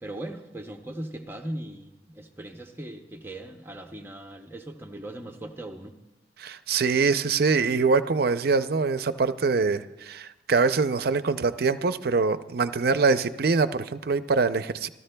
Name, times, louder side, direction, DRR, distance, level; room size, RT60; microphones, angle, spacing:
voice 1, 0.0-5.9, right 1 dB, 15° right, 4 dB, 0.6 m, -39 dB
voice 2, 6.4-14.9, right 4 dB, 55° right, 12 dB, 0.5 m, -24 dB
28.5 x 14.0 x 2.2 m, 0.97 s
head